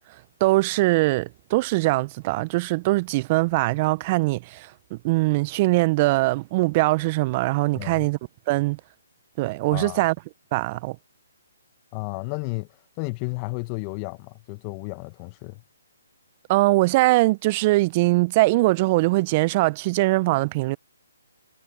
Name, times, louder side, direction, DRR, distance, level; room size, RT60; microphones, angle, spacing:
voice 1, 0.4-8.2 8.5-8.8 9.4-10.1 10.5-11.0 16.5-20.8, right 21 dB, 30° right, 0.7 m, -22 dB
voice 2, 7.7-8.1 9.7-10.1 11.9-15.6, left 28 dB, 30° left, 1.1 m, -33 dB
figure-of-eight pair, 140°, 0 cm